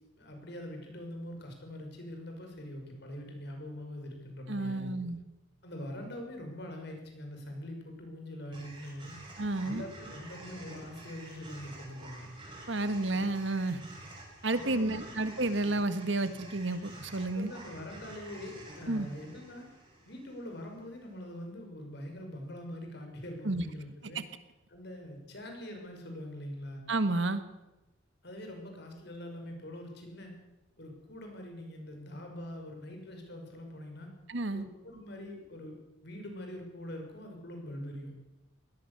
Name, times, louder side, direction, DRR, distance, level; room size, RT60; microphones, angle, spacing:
voice 1, 0.2-4.9 5.6-9.1 9.6-12.2 14.5-15.1 17.3-19.6 20.1-24.2 24.7-26.8 28.2-30.3 30.8-34.1 34.5-38.1, left 1 dB, 55° left, 3 dB, 5.8 m, -43 dB
voice 2, 4.5-5.2 9.4-9.8 12.7-13.8 14.4-17.5 18.9-19.1 23.4-23.6 24.1-24.2 26.9-27.4 34.3-34.7, right 2 dB, 65° right, 11 dB, 1.6 m, -31 dB
sound 1, 8.5-20.8, right 1 dB, 25° right, 7.3 m, -49 dB
21.5 x 18.5 x 6.9 m, 1.0 s
head